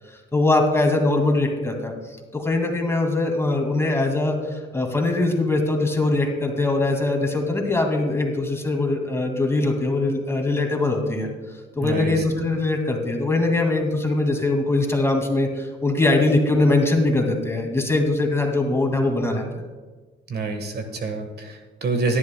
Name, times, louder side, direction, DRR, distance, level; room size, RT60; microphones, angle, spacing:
voice 1, 0.1-11.3 11.8-19.6, left 2 dB, 15° left, 2 dB, 2.2 m, -22 dB
voice 2, 11.8-12.2 20.3-22.2, right 3 dB, 55° right, 6 dB, 1.5 m, -27 dB
17.5 x 11.0 x 2.3 m, 1.4 s
cardioid pair, 90°, 20 cm